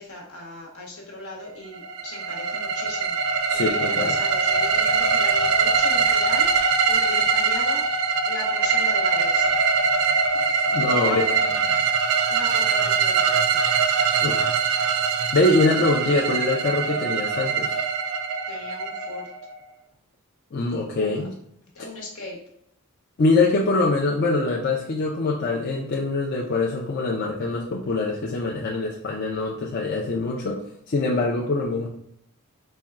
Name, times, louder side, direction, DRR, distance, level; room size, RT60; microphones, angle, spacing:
voice 1, 0.0-7.9 8.3-9.6 10.8-11.5 12.3-13.6 18.5-19.3 20.8-21.3 21.7-22.4, left 2 dB, 70° left, -1 dB, 1.1 m, -38 dB
sound 1, 1.7-19.6, right 5 dB, 85° right, 0.4 m, -22 dB
voice 2, 3.5-4.2 10.7-11.4 14.2-14.6 15.3-17.8 20.5-21.3 23.2-30.6 30.9-31.9, left 3 dB, 45° left, -3 dB, 0.4 m, -23 dB
4.2 x 2.2 x 3.5 m, 0.71 s
head